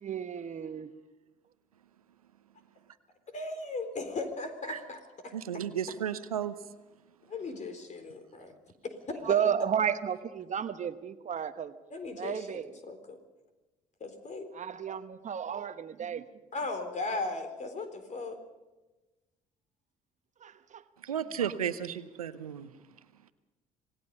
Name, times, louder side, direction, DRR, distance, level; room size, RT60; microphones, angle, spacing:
voice 1, 0.0-0.9 9.2-11.8 12.2-12.7 14.5-16.3 20.4-20.8 21.4-21.5 21.9-22.1, right 8 dB, 45° right, 11 dB, 1.1 m, -32 dB
voice 2, 3.3-5.3 7.3-8.5 8.8-9.4 11.9-12.5 12.9-13.2 14.0-14.5 16.5-18.4, left 3 dB, 40° left, 7 dB, 3.9 m, -37 dB
voice 3, 5.3-6.5 21.0-22.7, right 9 dB, 90° right, 13 dB, 0.8 m, -33 dB
26.5 x 18.0 x 5.4 m, 1.1 s
hypercardioid pair, 55°, 18 cm